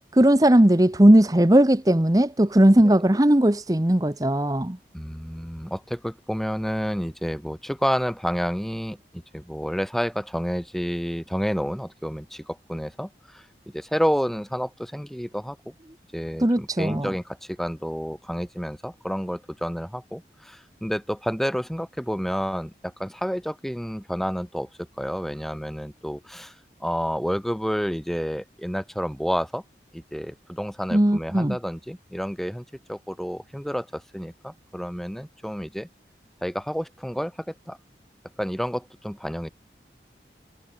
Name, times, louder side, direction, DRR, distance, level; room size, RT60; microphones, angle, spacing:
voice 1, 0.1-4.8 16.4-17.1 30.9-31.6, right 1 dB, 20° right, 0.9 m, -18 dB
voice 2, 4.9-9.0 9.3-13.5 13.7-15.7 16.1-24.7 25.0-26.6 26.8-29.6 29.9-35.9 36.4-37.8 38.4-39.5, equal, ahead, 5.2 m, -29 dB
head